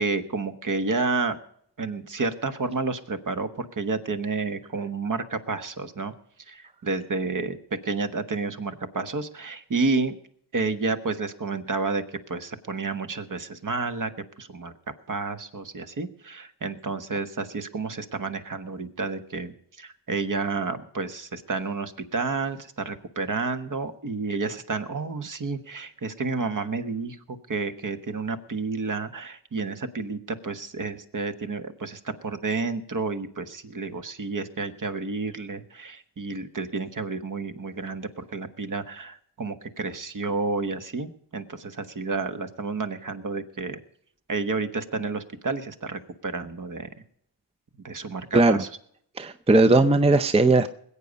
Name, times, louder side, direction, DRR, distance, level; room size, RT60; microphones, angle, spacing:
voice 1, 0.0-1.4 1.8-6.1 6.5-10.2 10.5-14.1 14.4-14.7 15.1-43.8 44.3-46.9 47.8-48.7, right 4 dB, 45° right, 9 dB, 1.3 m, -30 dB
voice 2, 48.3-48.6 49.2-50.7, right 2 dB, 15° right, 11 dB, 0.6 m, -18 dB
20.5 x 8.4 x 5.2 m, 0.68 s
cardioid pair, 80°, 46 cm